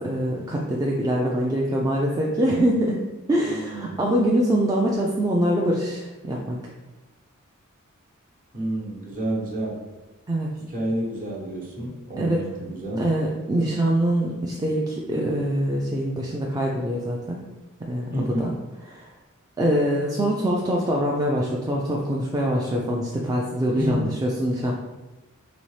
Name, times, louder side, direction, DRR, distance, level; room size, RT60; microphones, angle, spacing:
voice 1, 0.0-3.0 3.3-6.6 10.3-10.5 12.2-12.5 12.9-17.4 17.9-18.1 18.4-18.5 18.9-19.1 19.6-24.7, right 1 dB, 15° right, -2 dB, 0.3 m, -24 dB
voice 2, 3.4-4.0 8.5-9.8 10.7-13.0 18.1-18.5 23.7-24.1, equal, 40° right, -3 dB, 1.0 m, -29 dB
4.0 x 3.2 x 3.2 m, 1.1 s
head